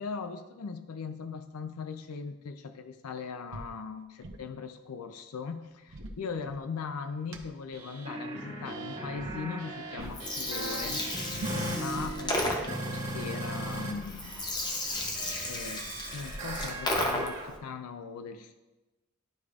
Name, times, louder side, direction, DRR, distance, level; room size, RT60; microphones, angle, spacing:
voice 1, 0.0-14.4 15.5-18.6, left 5 dB, 85° left, 8 dB, 0.5 m, -39 dB
sound 1, 3.5-3.7 4.0-4.5 5.6-6.9 7.3-7.4 8.5-8.8 9.2-9.4 10.0-10.3 10.6-12.2, right 1 dB, 65° right, 0.7 m, -42 dB
sound 2, 7.7-13.9 14.2-17.5, right 1 dB, 30° right, 2.2 m, -38 dB
Gurgling, 10.0-17.5, left 1 dB, 20° left, 0.7 m, -34 dB
11.5 x 4.9 x 2.4 m, 1.1 s
head